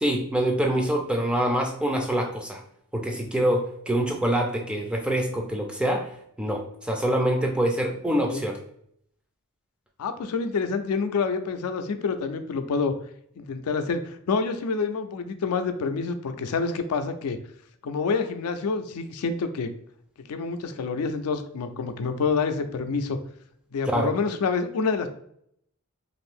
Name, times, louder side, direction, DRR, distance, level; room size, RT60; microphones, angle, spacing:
voice 1, 0.0-2.6 2.9-6.1 6.4-8.6 23.9-24.1, right 1 dB, 5° right, 2 dB, 0.3 m, -25 dB
voice 2, 10.0-12.9 13.4-17.4 17.8-19.7 20.3-23.2 23.7-25.1, left 4 dB, 80° left, 8 dB, 0.4 m, -27 dB
2.6 x 2.5 x 3.4 m, 0.70 s
head